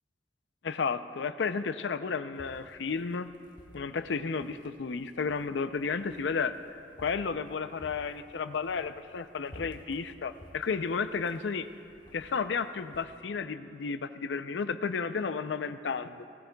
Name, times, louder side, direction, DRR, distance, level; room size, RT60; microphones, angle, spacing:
voice 1, 0.6-3.3 3.7-6.7 7.0-11.7 12.1-16.3, left 5 dB, 90° left, 11 dB, 0.5 m, -32 dB
sound 1, 2.3-13.1, equal, 25° left, 1.2 m, -55 dB
18.0 x 16.5 x 2.3 m, 2.6 s
head